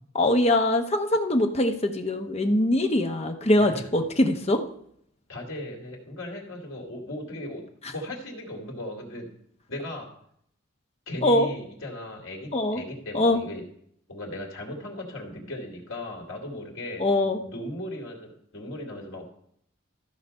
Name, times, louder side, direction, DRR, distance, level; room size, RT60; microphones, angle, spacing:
voice 1, 0.1-4.6 11.2-11.5 12.5-12.8 13.1-13.4 17.0-17.4, left 1 dB, 30° left, 5 dB, 0.9 m, -22 dB
voice 2, 5.3-7.6 7.9-9.3 9.7-10.1 11.1-13.6 14.1-19.2, left 1 dB, 70° left, 1 dB, 2.6 m, -37 dB
14.0 x 5.0 x 5.4 m, 0.68 s
head